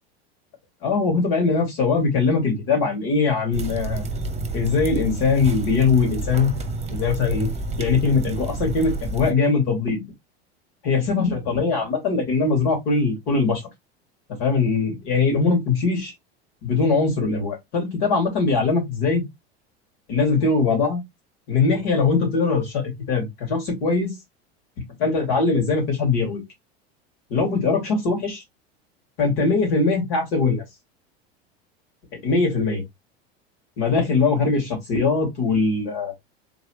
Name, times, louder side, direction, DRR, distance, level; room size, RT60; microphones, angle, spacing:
voice 1, 0.8-4.1 4.5-6.5 6.9-7.5 7.8-10.0 10.8-13.6 14.4-16.1 16.6-19.2 20.1-21.0 21.5-24.1 25.0-26.4 27.3-28.4 29.2-30.6 32.2-32.8 33.8-36.1, left 4 dB, 65° left, 3.0 m, -21 dB
sound 1, 3.5-9.3, right 3 dB, 20° right, 1.0 m, -29 dB
4.0 x 3.0 x 3.1 m
hypercardioid pair, 95°, 32 cm